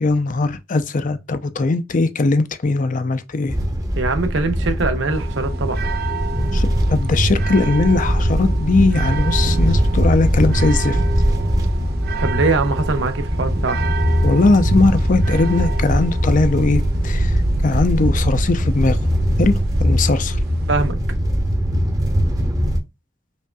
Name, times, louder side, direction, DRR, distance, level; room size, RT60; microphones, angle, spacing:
voice 1, 0.0-3.6 6.5-11.0 14.2-19.0 19.4-20.4, left 3 dB, 45° left, 0.5 m, -19 dB
sound 1, 3.5-22.8, equal, 20° right, 0.8 m, -21 dB
voice 2, 4.0-5.8 12.2-13.8 20.7-21.0, right 3 dB, 85° right, 0.8 m, -22 dB
sound 2, 5.1-20.9, right 3 dB, 55° right, 0.4 m, -28 dB
5.3 x 2.5 x 2.3 m
head